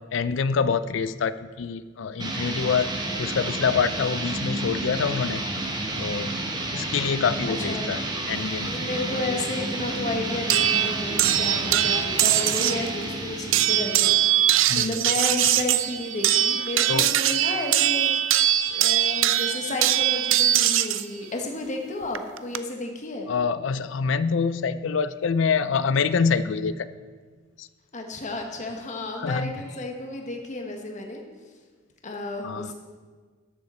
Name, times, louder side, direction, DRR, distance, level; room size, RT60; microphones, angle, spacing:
voice 1, 0.1-5.5 6.0-6.4 6.7-8.0 8.3-8.7 9.1-9.2 14.7-15.0 16.9-17.1 23.3-26.9 27.6-27.7 29.2-29.5 32.4-32.7, left 5 dB, 65° left, 14 dB, 0.4 m, -26 dB
sound 1, 2.2-14.7, right 2 dB, 20° right, 1.1 m, -31 dB
voice 2, 7.5-7.9 8.6-18.1 18.7-23.3 27.9-31.2 32.0-32.7, left 2 dB, 40° left, 2 dB, 1.3 m, -32 dB
sound 2, 10.5-12.9 13.5-21.0 22.1-22.6, right 12 dB, 75° right, 0.4 m, -22 dB
13.0 x 6.8 x 4.3 m, 1.5 s
head